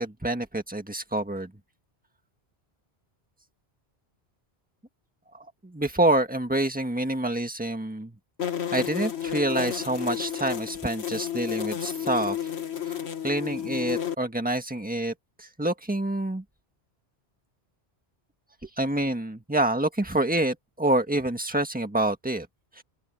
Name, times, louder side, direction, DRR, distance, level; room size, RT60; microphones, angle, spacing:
voice 1, 0.0-1.5 5.3-8.2 8.7-12.4 12.8-16.4 18.6-22.5 22.7-22.8, right 1 dB, 10° right, 1.6 m, -27 dB
sound 1, 8.4-14.1, left 10 dB, 75° left, 1.7 m, -31 dB
open air
omnidirectional pair, 1.1 m